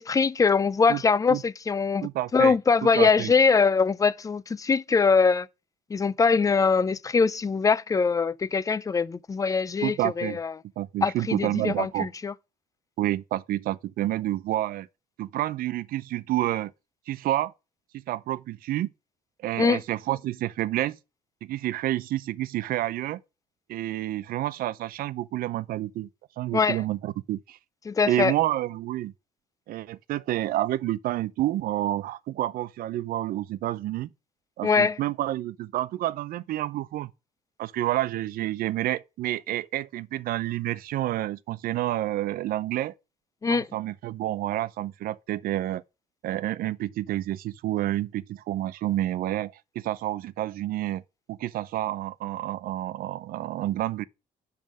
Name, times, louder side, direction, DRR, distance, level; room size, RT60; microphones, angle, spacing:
voice 1, 0.0-5.5 5.9-10.5 11.0-12.3 19.6-19.8 26.5-26.8 27.9-28.3 34.6-35.0 43.4-43.7, left 5 dB, 20° left, 0.4 m, -23 dB
voice 2, 2.0-2.5 2.9-3.3 9.8-10.4 10.8-12.1 13.0-14.9 15.2-16.7 17.1-17.5 18.1-18.9 19.4-21.0 21.4-23.2 23.7-26.1 26.4-27.6 28.1-29.1 29.7-34.1 34.6-37.1 37.6-42.9 43.5-45.8 46.2-51.0 51.3-54.0, right 14 dB, 75° right, 0.5 m, -29 dB
10.5 x 3.8 x 6.3 m
cardioid pair, 105°, 15 cm